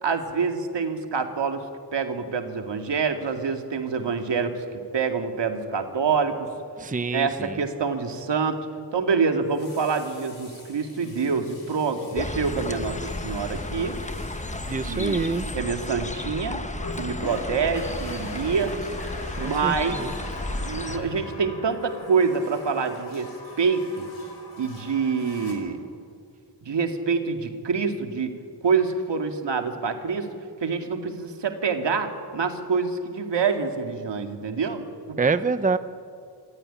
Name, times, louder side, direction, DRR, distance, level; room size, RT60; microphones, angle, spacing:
voice 1, 0.0-4.6 4.9-6.5 7.1-8.6 8.9-14.0 14.8-16.6 17.0-18.8 19.3-20.1 20.6-24.1 24.6-25.8 26.6-28.3 28.6-30.3 30.6-35.2, right 5 dB, 80° right, 5 dB, 2.2 m, -26 dB
Water tap faucet, 5.8-6.0 9.4-16.2 16.8-25.5, left 2 dB, 60° left, 5.3 m, -42 dB
voice 2, 6.8-7.6 14.7-15.5 19.4-20.1 35.2-35.8, right 4 dB, 20° right, 11 dB, 0.7 m, -26 dB
sound 1, 12.2-21.0, left 2 dB, 15° left, 1.1 m, -33 dB
26.5 x 14.5 x 10.0 m, 2.3 s
wide cardioid pair, 110°, 42 cm